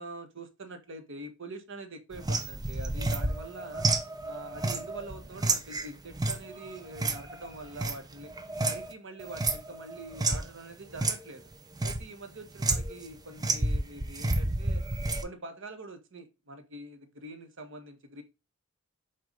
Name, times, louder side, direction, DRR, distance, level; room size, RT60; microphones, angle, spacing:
voice 1, 0.0-3.9 4.2-8.3 8.6-11.4 11.8-14.8 15.2-18.2, right 2 dB, 65° right, 7 dB, 1.3 m, -44 dB
sound 1, 2.1-8.9 9.2-10.5 10.9-11.2 11.5-12.0 12.6-13.1 13.4-15.2, right 2 dB, 20° right, 0.7 m, -30 dB
7.7 x 2.6 x 5.4 m, 0.26 s
head